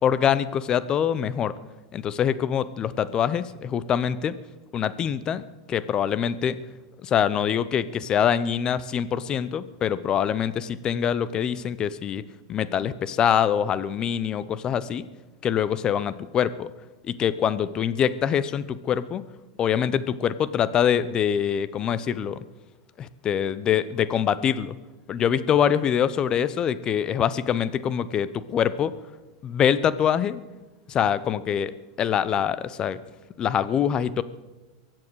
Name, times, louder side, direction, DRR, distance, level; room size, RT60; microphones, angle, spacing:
voice 1, 0.0-1.5 1.9-4.3 4.7-6.6 7.0-12.2 12.5-15.0 15.4-16.7 17.0-19.2 19.6-22.4 23.0-24.7 25.1-28.9 29.4-30.4 30.9-31.7 32.0-33.0 33.4-34.2, left 8 dB, 30° left, 15 dB, 0.8 m, -24 dB
23.0 x 7.7 x 6.4 m, 1.2 s
hypercardioid pair, 115°, 3 cm